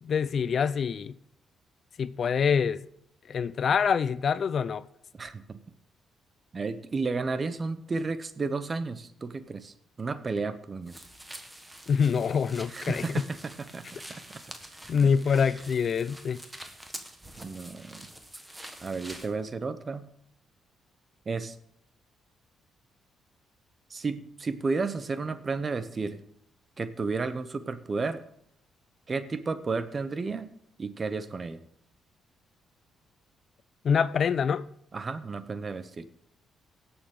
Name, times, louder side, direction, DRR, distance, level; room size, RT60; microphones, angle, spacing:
voice 1, 0.0-1.2 2.0-2.8 3.3-4.9 11.9-13.2 14.9-16.4 33.8-34.7, left 6 dB, 50° left, 0.4 m, -25 dB
voice 2, 5.2-5.6 6.5-10.9 12.7-14.2 14.8-14.9 17.4-18.1 18.8-20.1 21.3-21.5 23.9-26.2 26.8-28.2 29.1-30.5 30.8-31.6 34.9-36.1, right 4 dB, 35° right, 0.8 m, -32 dB
sound 1, 10.9-19.3, right 1 dB, 10° right, 1.4 m, -46 dB
17.5 x 7.0 x 3.8 m
cardioid pair, 90°, 0 cm